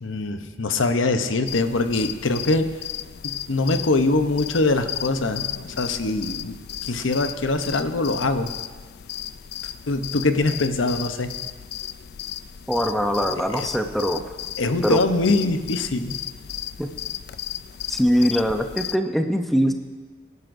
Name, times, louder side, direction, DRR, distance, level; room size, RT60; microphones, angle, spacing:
voice 1, 0.0-2.7 3.2-6.6 6.8-8.5 9.9-11.3 13.5-13.7 14.6-16.2, left 2 dB, 90° left, 8 dB, 0.8 m, -23 dB
sound 1, 1.5-19.0, left 11 dB, 55° left, 0.4 m, -35 dB
voice 2, 12.7-14.2 14.8-15.0 16.8-16.9 17.9-19.7, equal, ahead, 5 dB, 0.6 m, -22 dB
24.0 x 11.0 x 2.6 m, 1.4 s
head